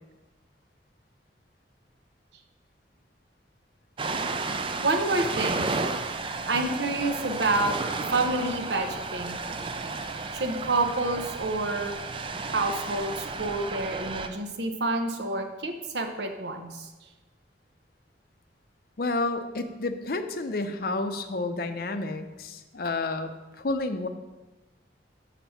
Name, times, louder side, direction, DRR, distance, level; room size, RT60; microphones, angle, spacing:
Ocean, 4.0-14.3, right 3 dB, 30° right, 0.4 m, -32 dB
voice 1, 4.8-5.7 6.5-7.7 8.1-9.4 10.3-11.9 12.5-16.9, right 2 dB, 70° right, 5 dB, 0.9 m, -28 dB
voice 2, 19.0-23.3 23.6-24.1, left 2 dB, 55° left, 8 dB, 0.6 m, -30 dB
7.1 x 5.9 x 5.7 m, 1.1 s
head